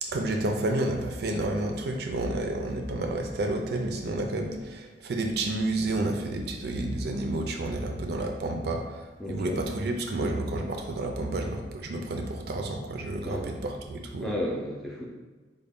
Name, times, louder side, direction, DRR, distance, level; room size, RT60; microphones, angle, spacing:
voice 1, 0.0-14.3, right 2 dB, 60° right, 3 dB, 0.4 m, -30 dB
voice 2, 9.2-9.6 13.2-13.5 14.2-15.1, equal, ahead, -3 dB, 0.5 m, -33 dB
3.9 x 2.2 x 3.5 m, 1.3 s
head